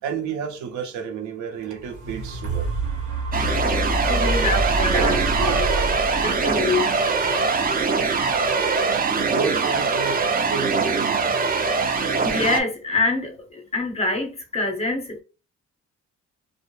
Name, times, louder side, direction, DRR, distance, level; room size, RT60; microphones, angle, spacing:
voice 1, 0.0-2.7 3.9-4.2 4.9-6.0 9.3-11.3, right 6 dB, 70° right, 0.7 m, -31 dB
sound 1, 1.6-9.7 10.3-10.4, right 2 dB, 90° right, 1.0 m, -28 dB
sound 2, 3.3-12.6, right 4 dB, 30° right, 0.4 m, -22 dB
voice 2, 4.0-5.5 6.2-6.9 12.2-15.2, left 3 dB, 20° left, 0.6 m, -25 dB
2.1 x 2.0 x 3.0 m
cardioid pair, 90°, 30 cm